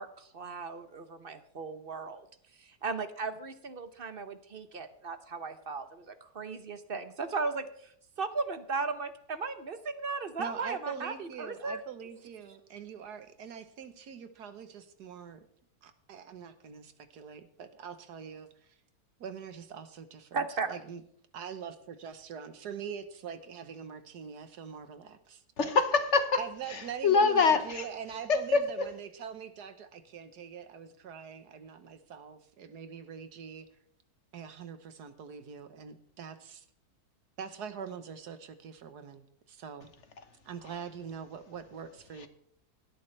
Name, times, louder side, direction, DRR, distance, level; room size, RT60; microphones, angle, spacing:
voice 1, 0.0-2.3 2.6-7.9 8.2-11.8 20.3-20.7, right 4 dB, 45° right, 10 dB, 0.9 m, -36 dB
voice 2, 10.4-15.5 15.8-18.5 19.2-21.0 21.3-25.7 26.4-33.7 34.3-36.6 37.4-39.9 40.4-42.3, right 7 dB, 90° right, 10 dB, 1.7 m, -43 dB
voice 3, 25.6-26.4 26.7-27.8 28.3-28.8 42.2-42.3, left 4 dB, 50° left, 9 dB, 1.3 m, -25 dB
17.0 x 12.5 x 3.3 m, 0.66 s
omnidirectional pair, 1.7 m